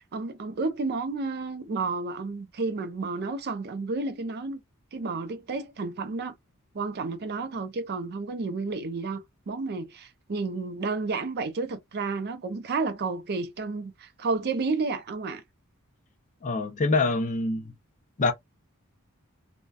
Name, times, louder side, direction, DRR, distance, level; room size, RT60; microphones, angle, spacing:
voice 1, 0.1-4.6 4.9-6.3 6.7-15.4, right 3 dB, 50° right, 0.5 m, -31 dB
voice 2, 16.4-17.7 18.2-18.3, left 3 dB, 35° left, 0.4 m, -25 dB
2.6 x 2.1 x 2.2 m
head